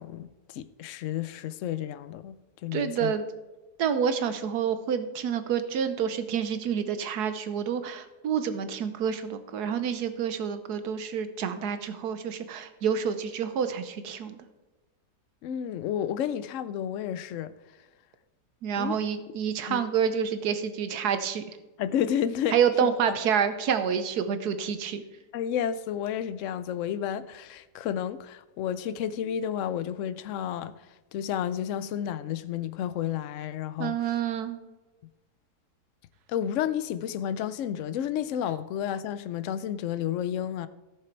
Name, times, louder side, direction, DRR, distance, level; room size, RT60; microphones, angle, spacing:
voice 1, 0.0-2.4 2.6-3.1 15.4-17.5 18.8-19.0 19.7-19.9 21.8-22.6 23.1-23.2 25.3-30.9 31.1-34.2 36.3-40.7, left 9 dB, 70° left, 0.7 m, -31 dB
voice 2, 2.7-3.2 3.8-14.4 18.6-21.4 22.5-25.0 33.8-34.6, right 7 dB, 70° right, 1.3 m, -28 dB
14.0 x 6.8 x 4.5 m
omnidirectional pair, 1.8 m